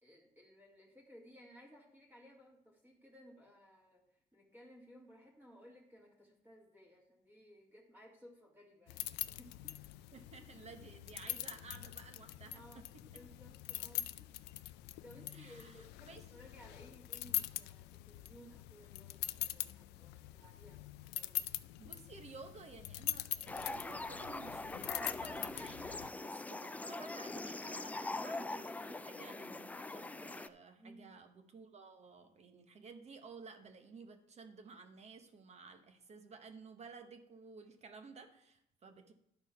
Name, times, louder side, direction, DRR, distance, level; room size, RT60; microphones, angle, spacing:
voice 1, 0.0-9.8 12.5-12.8 13.1-14.4 15.0-20.8 21.2-22.0 30.7-31.2, equal, 10° right, -1 dB, 2.0 m, -59 dB
sound 1, 8.9-26.1, left 16 dB, 90° left, 0.4 m, -43 dB
voice 2, 10.1-12.8 15.3-16.2 21.8-39.1, right 4 dB, 40° right, 7 dB, 1.1 m, -54 dB
sound 2, 23.5-30.5, left 2 dB, 10° left, 0.3 m, -43 dB
11.5 x 4.4 x 5.7 m, 0.75 s
cardioid pair, 110°, 17 cm